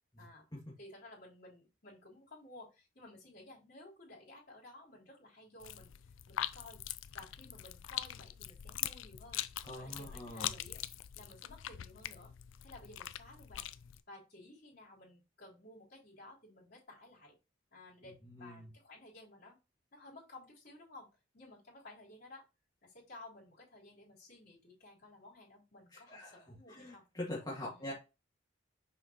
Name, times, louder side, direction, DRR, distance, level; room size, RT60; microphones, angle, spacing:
voice 1, 0.8-6.8 7.1-9.4 9.8-10.8 11.1-12.3 12.6-13.7 14.1-17.4 17.7-19.6 19.9-21.1 21.3-22.4 22.8-27.0 27.7-27.9, left 2 dB, 55° left, -6 dB, 3.8 m, -55 dB
sound 1, 5.6-14.0, left 12 dB, 80° left, 0.4 m, -43 dB
voice 2, 9.6-10.6 18.2-18.7 25.9-27.9, left 1 dB, 20° left, -6 dB, 1.8 m, -44 dB
6.4 x 5.1 x 3.0 m, 0.28 s
head